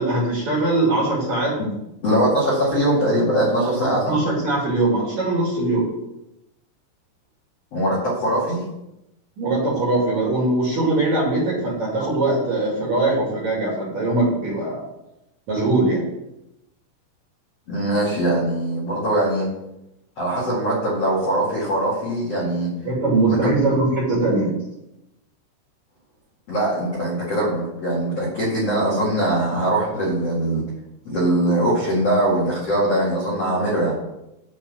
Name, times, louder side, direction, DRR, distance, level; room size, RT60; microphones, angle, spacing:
voice 1, 0.0-1.6 3.6-3.7 4.1-5.9 9.4-14.8 15.5-16.0 22.8-24.5, right 2 dB, 45° right, -4 dB, 2.8 m, -21 dB
voice 2, 2.0-4.2 7.7-8.6 17.7-19.5 20.2-22.7 23.3-23.5 26.5-30.6 31.0-33.9, right 1 dB, 45° left, -7 dB, 2.1 m, -21 dB
8.6 x 4.5 x 7.3 m, 0.89 s
omnidirectional pair, 5.8 m